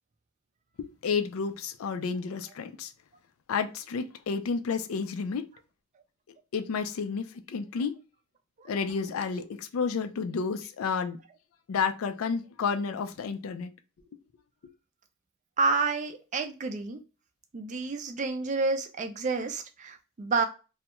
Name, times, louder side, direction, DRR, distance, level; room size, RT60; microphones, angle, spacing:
voice 1, 0.8-2.9 3.5-5.4 6.5-7.9 8.7-11.2 11.7-13.7, left 5 dB, 75° left, 0.4 m, -31 dB
voice 2, 15.6-17.0 17.5-20.5, right 4 dB, 35° right, 0.4 m, -29 dB
2.3 x 2.1 x 2.8 m
head